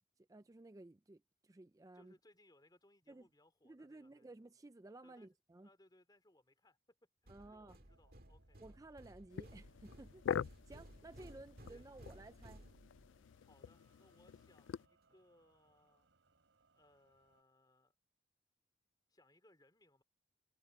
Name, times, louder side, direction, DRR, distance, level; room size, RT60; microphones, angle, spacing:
voice 1, 0.3-2.2 3.1-3.3 3.6-5.7 7.3-7.8 8.6-10.3 10.7-12.6, right 2 dB, 20° right, 0.4 m, -56 dB
voice 2, 1.9-4.3 5.0-5.3 5.6-7.0 7.2-8.6 11.7-11.9 13.4-16.1 16.7-17.9 19.1-20.0, left 1 dB, 20° left, 3.2 m, -69 dB
sound 1, 7.3-13.3, right 1 dB, 50° right, 2.1 m, -58 dB
sound 2, 7.9-17.4, right 3 dB, 90° right, 4.1 m, -76 dB
sound 3, 9.3-14.9, left 7 dB, 90° left, 0.3 m, -45 dB
head